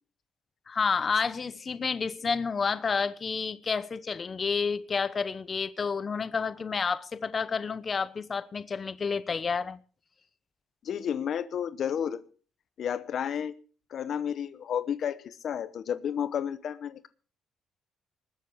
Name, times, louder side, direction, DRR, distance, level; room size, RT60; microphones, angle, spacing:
voice 1, 0.7-9.8, left 5 dB, 40° left, 1.0 m, -30 dB
voice 2, 10.8-12.2 12.8-13.5 13.9-17.1, left 8 dB, 65° left, 0.9 m, -31 dB
20.0 x 7.8 x 6.7 m
cardioid pair, 90°, 0 cm